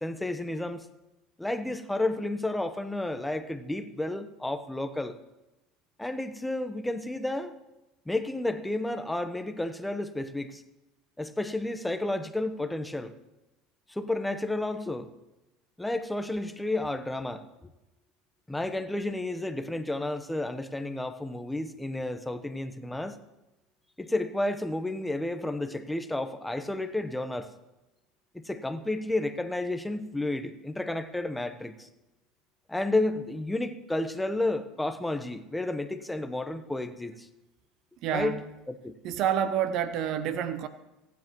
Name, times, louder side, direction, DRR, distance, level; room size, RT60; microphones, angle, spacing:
voice 1, 0.0-0.9 1.4-5.2 6.0-7.5 8.1-10.6 11.2-13.1 13.9-15.1 15.8-17.7 18.5-23.2 24.0-27.5 28.3-31.9 32.7-37.3 38.1-38.4 38.7-38.9, left 2 dB, 5° left, 1.0 m, -31 dB
voice 2, 38.0-38.4 39.0-40.7, right 9 dB, 60° right, 0.8 m, -28 dB
28.0 x 9.5 x 3.1 m
hypercardioid pair, 80°, 0 cm